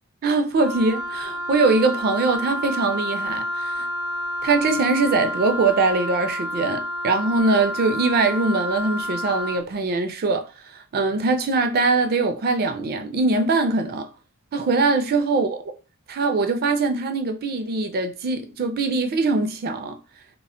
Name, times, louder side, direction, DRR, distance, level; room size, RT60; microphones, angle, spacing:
voice 1, 0.2-3.9 4.4-10.5 10.7-14.1 14.5-15.6 16.1-20.0, right 3 dB, 45° right, 0.4 m, -22 dB
Wind instrument woodwind instrument, 0.5-9.6, equal, 70° left, 0.7 m, -29 dB
2.2 x 2.1 x 3.6 m
head